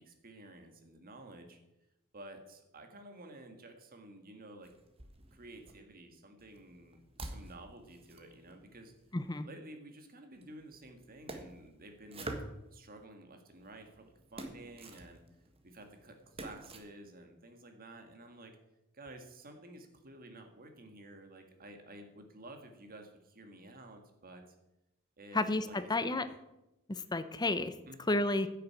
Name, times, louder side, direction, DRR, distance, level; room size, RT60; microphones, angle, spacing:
voice 1, 0.0-1.6 2.1-4.7 5.3-8.9 9.5-12.3 12.7-15.2 15.6-18.5 18.9-24.6 25.2-26.3 27.9-28.2, right 1 dB, 40° right, 5 dB, 1.8 m, -52 dB
sound 1, 4.6-5.7 6.4-9.4 10.3-13.1 13.6-16.8, right 2 dB, 25° right, 1.5 m, -49 dB
voice 2, 9.1-9.5 25.3-26.3 26.9-27.7 28.1-28.5, left 2 dB, 20° left, 12 dB, 0.7 m, -31 dB
10.5 x 6.7 x 8.6 m, 0.92 s
head